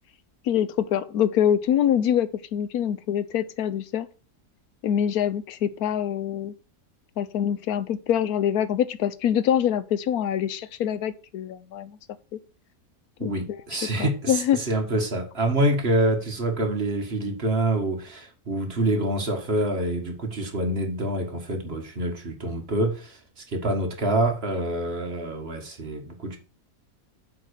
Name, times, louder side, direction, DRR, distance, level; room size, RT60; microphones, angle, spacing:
voice 1, 0.4-4.1 4.8-6.5 7.2-12.0 13.2-13.6 14.0-14.6, left 9 dB, 85° left, 1.2 m, -25 dB
voice 2, 13.2-26.4, right 1 dB, 40° right, 1.9 m, -26 dB
7.6 x 5.0 x 6.4 m
omnidirectional pair, 1.6 m